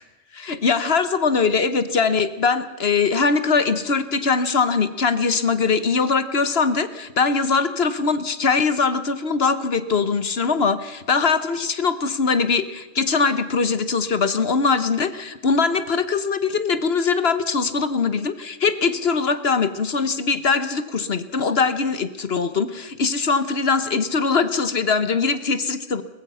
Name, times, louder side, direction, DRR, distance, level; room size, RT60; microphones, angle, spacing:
voice 1, 0.3-26.0, left 5 dB, 55° left, 13 dB, 1.3 m, -21 dB
22.5 x 20.5 x 5.6 m, 1.1 s
omnidirectional pair, 1.3 m